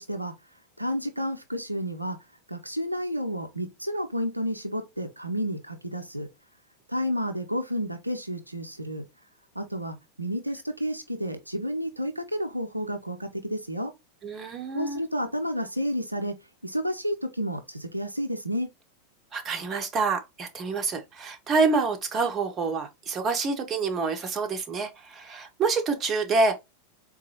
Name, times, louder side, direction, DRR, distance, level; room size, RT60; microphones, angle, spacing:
voice 1, 0.0-2.2 2.5-6.3 6.9-9.0 9.6-13.9 14.7-16.4 16.6-18.7, equal, 85° right, 0.4 m, -31 dB
voice 2, 14.2-15.0 19.3-26.6, right 4 dB, 25° right, 0.7 m, -27 dB
3.8 x 2.3 x 2.7 m
figure-of-eight pair, 90°, 0 cm